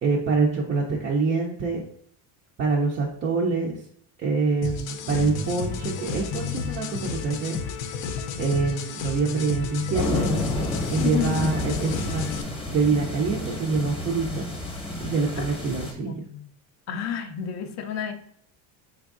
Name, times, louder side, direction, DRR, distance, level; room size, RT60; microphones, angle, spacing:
voice 1, 0.0-1.8 2.6-3.8 4.2-7.6 8.4-10.3 10.9-12.2 12.7-14.5 15.0-16.2, right 4 dB, 25° right, -2 dB, 0.4 m, -25 dB
sound 1, 4.6-12.4, left 5 dB, 80° left, 0.6 m, -32 dB
sound 2, 9.9-15.9, left 2 dB, 10° left, 0.8 m, -30 dB
voice 2, 11.0-11.5 15.4-15.5 16.0-16.5 16.9-18.1, left 8 dB, 40° left, 8 dB, 0.4 m, -30 dB
4.5 x 3.5 x 2.4 m, 0.65 s
cardioid pair, 140°, 44 cm